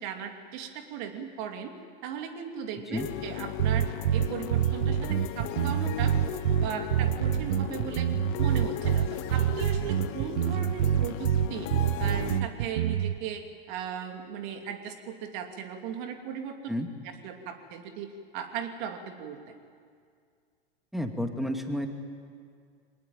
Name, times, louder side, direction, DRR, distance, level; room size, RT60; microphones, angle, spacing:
voice 1, 0.0-1.7 2.0-8.1 8.4-11.7 12.0-16.6 17.0-18.1 18.3-19.5, right 8 dB, 50° right, 5 dB, 2.9 m, -37 dB
sound 1, 2.9-12.4, left 12 dB, 45° left, 1.5 m, -37 dB
sound 2, 3.6-13.2, right 11 dB, 70° right, 0.7 m, -26 dB
voice 2, 20.9-21.9, equal, ahead, 5 dB, 2.1 m, -31 dB
23.5 x 19.0 x 9.1 m, 2.2 s
hypercardioid pair, 100°, 30 cm